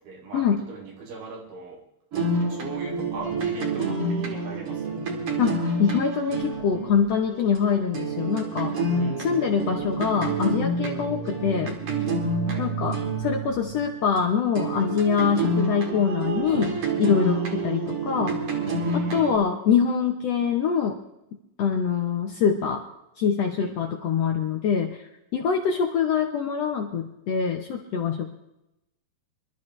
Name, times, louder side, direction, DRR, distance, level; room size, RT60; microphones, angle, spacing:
voice 1, 0.0-1.8 2.4-5.0 9.0-9.4 12.5-12.7 18.7-19.4 23.6-23.7, right 4 dB, 90° right, -1 dB, 4.7 m, -39 dB
sound 1, 2.1-14.2 14.6-19.4, right 2 dB, 45° right, 2.5 m, -28 dB
voice 2, 5.4-8.7 9.2-11.8 12.6-18.3 18.9-21.0 21.6-22.8 23.2-25.0 25.3-28.3, left 6 dB, 70° left, 3 dB, 1.6 m, -24 dB
25.5 x 12.5 x 3.2 m, 0.89 s
omnidirectional pair, 4.1 m